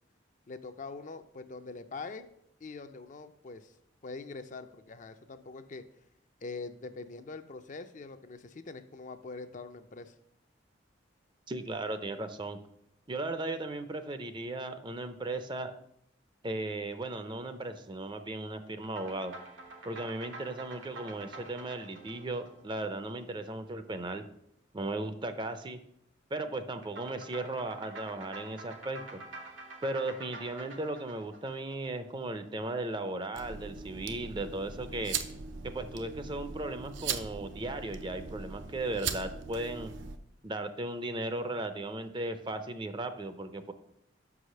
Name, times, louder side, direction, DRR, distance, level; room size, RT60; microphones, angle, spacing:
voice 1, 0.5-2.3 2.6-3.7 4.0-5.8 6.4-10.1, left 3 dB, 40° left, 9 dB, 0.5 m, -43 dB
voice 2, 11.5-12.6 13.1-15.7 16.4-19.3 19.8-24.2 24.7-25.8 26.3-29.2 29.8-35.2 35.6-39.9 40.4-43.7, right 2 dB, 25° right, 10 dB, 0.5 m, -36 dB
sound 1, 18.8-23.5 26.8-32.2, right 2 dB, 90° right, 1.7 m, -48 dB
sound 2, 33.3-40.2, right 6 dB, 70° right, 0.6 m, -39 dB
6.1 x 4.9 x 6.4 m, 0.73 s
head